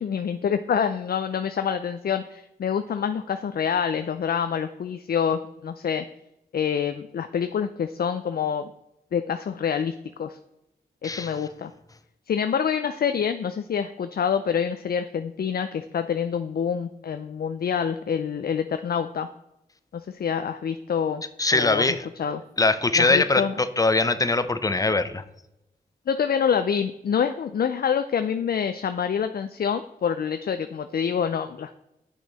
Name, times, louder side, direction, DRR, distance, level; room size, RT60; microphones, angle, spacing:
voice 1, 0.0-6.0 6.5-8.7 9.1-10.4 11.0-11.7 12.3-19.3 19.9-21.2 21.5-22.4 23.0-23.6 26.1-31.8, left 7 dB, 65° left, 9 dB, 0.5 m, -26 dB
voice 2, 21.4-22.0 22.6-25.2, left 3 dB, 20° left, 11 dB, 0.7 m, -22 dB
8.2 x 6.1 x 4.1 m, 0.89 s
cardioid pair, 55°, 17 cm